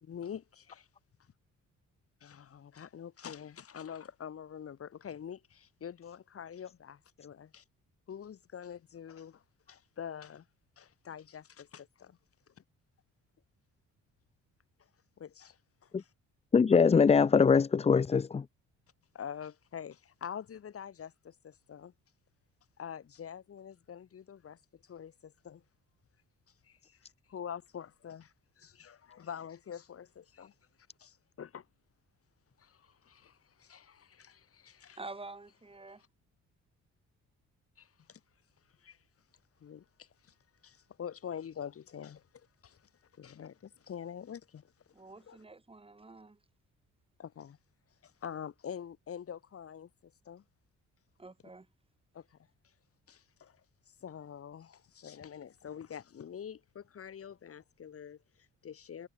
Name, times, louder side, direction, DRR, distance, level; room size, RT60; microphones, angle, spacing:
voice 1, 0.0-0.9 2.2-7.6 8.1-9.4 9.7-10.5 10.8-12.2 12.5-12.6 15.2-16.1 19.1-21.9 22.8-25.6 26.6-30.5 31.0-31.7 32.6-35.0 35.8-36.1 37.8-38.2 38.8-39.0 39.6-40.4 40.6-45.4 47.2-47.6 48.0-50.4 52.1-52.4 53.1-59.1, left 8 dB, 50° left, 1.8 m, -46 dB
voice 2, 16.5-18.5, left 5 dB, 20° left, 0.5 m, -23 dB
voice 3, 35.0-36.0 44.9-46.4 51.2-51.7, right 3 dB, 20° right, 2.4 m, -48 dB
cardioid pair, 90°, 30 cm